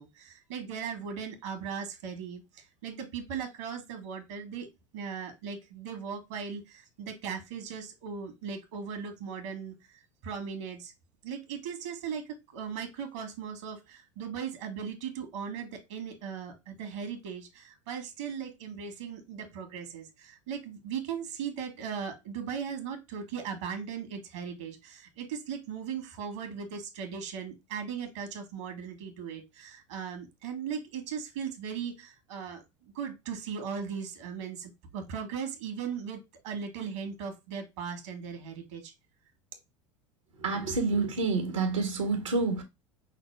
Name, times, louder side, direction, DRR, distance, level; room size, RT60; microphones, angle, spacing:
voice 1, 0.0-4.7 4.9-9.7 10.2-10.9 11.2-12.2 12.5-32.6 32.9-38.9, right 7 dB, 70° right, 1.6 m, -38 dB
voice 2, 40.4-42.6, right 3 dB, 85° right, 1.4 m, -28 dB
5.7 x 2.1 x 3.3 m
hypercardioid pair, 90°, 16 cm